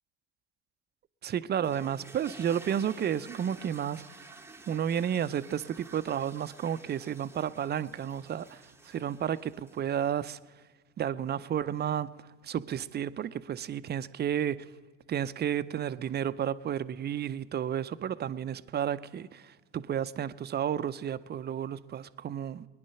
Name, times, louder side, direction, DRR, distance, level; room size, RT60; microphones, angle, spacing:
voice 1, 1.2-4.0 4.7-10.4 11.0-12.1 12.4-14.7 15.1-22.7, right 9 dB, 35° right, 0.6 m, -32 dB
sound 1, 1.6-10.0, right 3 dB, 10° right, 0.9 m, -51 dB
20.5 x 10.5 x 5.7 m
hypercardioid pair, 75°, 31 cm